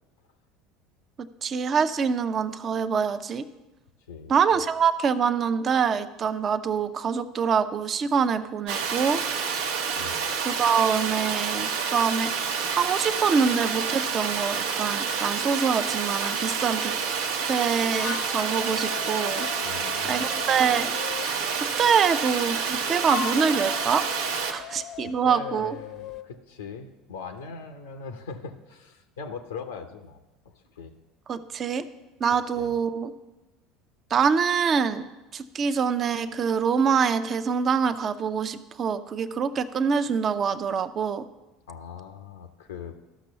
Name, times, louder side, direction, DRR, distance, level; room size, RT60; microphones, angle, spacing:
voice 1, 1.2-3.4 4.3-9.2 10.4-12.3 12.7-16.9 17.5-19.5 20.0-20.9 21.6-24.1 24.5-25.8 31.3-31.9 32.2-33.1 34.1-35.0 35.3-41.3, right 6 dB, 40° right, 11 dB, 0.7 m, -25 dB
voice 2, 4.1-4.6 10.0-10.3 19.6-20.3 24.5-30.9 32.6-32.7 41.7-43.0, left 5 dB, 85° left, 5 dB, 0.8 m, -41 dB
Water, 8.7-24.5, right 6 dB, 75° right, 1.0 m, -28 dB
sound 1, 17.8-21.3 22.6-26.3, left 11 dB, 55° left, 0.7 m, -38 dB
12.5 x 6.1 x 6.8 m, 1.1 s
hypercardioid pair, 75°, 0 cm